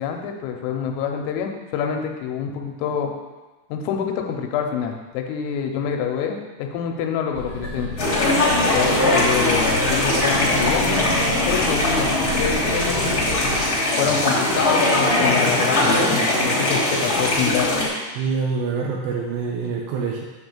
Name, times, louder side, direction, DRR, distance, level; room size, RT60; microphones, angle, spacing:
voice 1, 0.0-3.1 3.7-7.9 8.7-11.1 11.5-12.1 12.3-13.2 14.0-17.7, left 8 dB, 85° left, 3 dB, 3.5 m, -26 dB
sound 1, 7.3-13.6, left 1 dB, 45° right, 1.6 m, -31 dB
sound 2, 8.0-17.9, left 1 dB, 45° left, 1.2 m, -20 dB
voice 2, 18.2-20.3, right 5 dB, 80° right, -1 dB, 2.6 m, -25 dB
9.4 x 3.8 x 7.2 m, 1.2 s
omnidirectional pair, 5.8 m